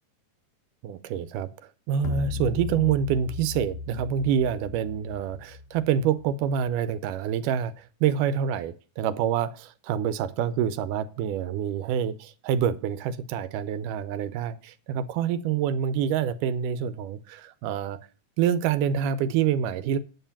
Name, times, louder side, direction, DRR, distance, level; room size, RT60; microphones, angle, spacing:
voice 1, 0.8-1.5 1.9-18.0 18.4-20.0, right 8 dB, 90° right, 2.3 m, -27 dB
sound 1, 2.0-6.5, left 5 dB, 70° left, 1.7 m, -36 dB
9.6 x 5.7 x 7.2 m
omnidirectional pair, 3.6 m